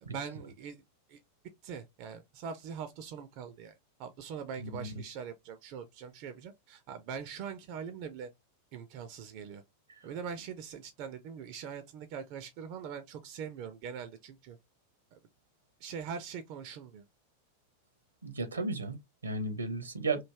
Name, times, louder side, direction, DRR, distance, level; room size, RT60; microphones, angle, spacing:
voice 1, 0.0-0.8 1.1-1.2 1.6-8.3 8.7-9.6 10.0-14.6 15.1-15.2 15.8-17.0, right 7 dB, 45° right, 0.4 m, -42 dB
voice 2, 4.6-4.9 18.2-20.2, right 3 dB, 75° right, 0.7 m, -34 dB
3.2 x 2.5 x 3.4 m
figure-of-eight pair, 90°, 0 cm